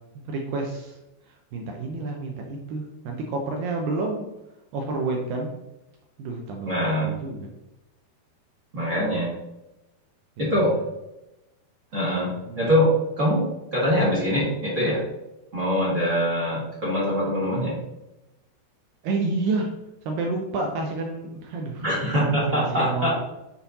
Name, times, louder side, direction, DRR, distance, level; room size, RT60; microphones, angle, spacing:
voice 1, 0.2-1.0 1.3-4.3 4.7-5.5 6.2-7.5 10.4-10.8 11.9-12.7 19.0-19.8 20.1-21.9 22.2-23.1, right 3 dB, 80° right, 1 dB, 2.1 m, -30 dB
voice 2, 6.6-7.1 8.7-9.3 10.4-10.7 11.9-12.3 12.5-12.9 13.2-13.4 13.7-15.0 15.5-17.7 21.8-23.1, equal, 45° right, -6 dB, 1.0 m, -23 dB
7.9 x 4.2 x 4.0 m, 0.94 s
omnidirectional pair, 4.8 m